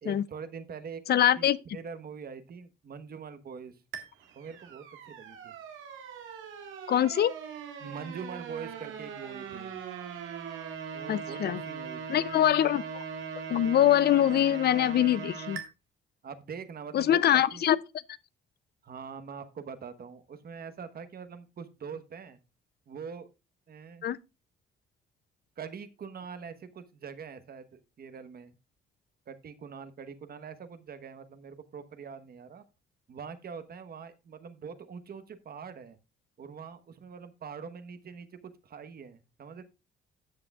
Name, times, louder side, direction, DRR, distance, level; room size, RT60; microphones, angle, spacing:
voice 1, 0.0-3.8 4.3-5.5 7.8-9.7 10.9-12.4 16.2-17.6 18.8-22.4 22.9-23.3 23.7-24.1 25.6-28.5 29.3-32.6 33.1-36.0 36.4-39.6, right 6 dB, 50° right, 1.1 m, -43 dB
voice 2, 1.1-1.6 6.9-7.3 11.1-11.6 12.1-13.0 13.5-15.6 16.9-17.8 24.0-24.2, left 11 dB, 55° left, 0.5 m, -24 dB
sound 1, 3.9-15.6, right 6 dB, 85° right, 1.7 m, -40 dB
13.0 x 7.7 x 2.4 m
cardioid pair, 90°, 20 cm